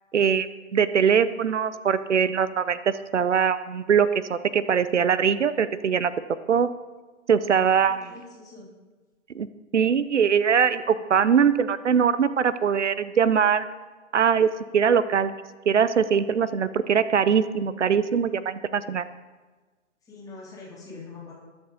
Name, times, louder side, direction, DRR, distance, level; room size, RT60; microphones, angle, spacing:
voice 1, 0.1-6.1 6.5-6.7 7.3-8.1 9.3-9.5 9.7-13.7 14.1-15.3 15.7-19.0, right 7 dB, 70° right, 15 dB, 0.8 m, -22 dB
voice 2, 7.8-8.7 20.0-21.3, left 3 dB, 10° left, -5 dB, 3.2 m, -44 dB
21.0 x 7.0 x 4.0 m, 1.3 s
figure-of-eight pair, 125°, 37 cm